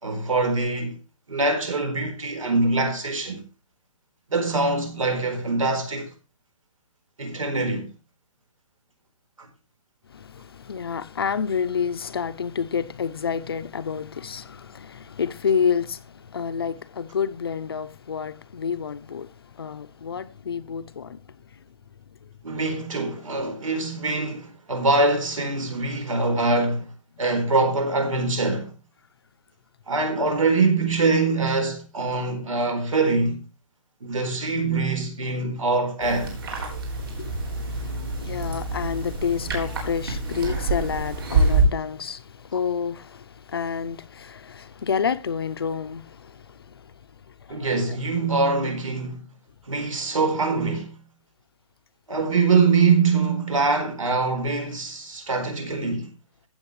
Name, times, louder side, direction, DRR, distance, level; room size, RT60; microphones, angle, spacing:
voice 1, 0.0-1.0 1.3-3.4 4.3-6.1 7.2-7.9 9.4-9.5 22.4-26.9 27.2-28.7 29.9-33.4 34.0-36.3 47.5-49.2 49.7-50.9 52.1-56.1, right 3 dB, 80° right, 4.2 m, -23 dB
voice 2, 10.1-21.2 21.6-21.7 36.9-48.0, left 6 dB, 45° left, 0.6 m, -29 dB
sound 1, 36.0-41.6, right 3 dB, 45° right, 4.0 m, -26 dB
15.0 x 8.1 x 3.1 m
hypercardioid pair, 180°, 17 cm